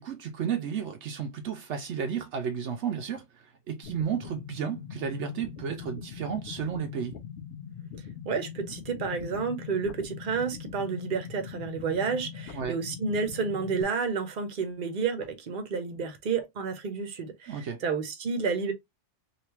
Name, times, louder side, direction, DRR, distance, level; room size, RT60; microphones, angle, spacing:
voice 1, 0.0-7.2 12.5-12.8 17.5-17.8, right 7 dB, 75° right, 0.9 m, -33 dB
sound 1, 3.8-13.8, left 8 dB, 70° left, 0.8 m, -41 dB
voice 2, 8.3-18.7, right 5 dB, 45° right, 0.9 m, -30 dB
3.3 x 2.7 x 2.9 m
omnidirectional pair, 1.3 m